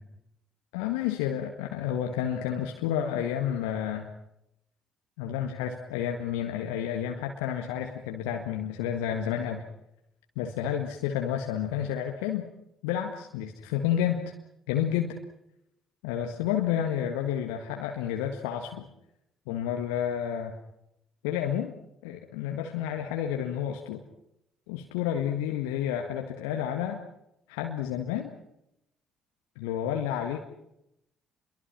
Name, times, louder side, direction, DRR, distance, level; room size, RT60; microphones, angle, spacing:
voice 1, 0.7-4.1 5.2-9.6 10.3-12.5 12.8-14.2 14.7-15.2 16.0-18.9 19.5-20.6 21.2-21.7 22.0-24.0 24.7-27.0 27.5-28.3 29.5-30.4, left 10 dB, 70° left, 3 dB, 1.8 m, -30 dB
28.5 x 23.0 x 6.0 m, 0.82 s
figure-of-eight pair, 45°, 0 cm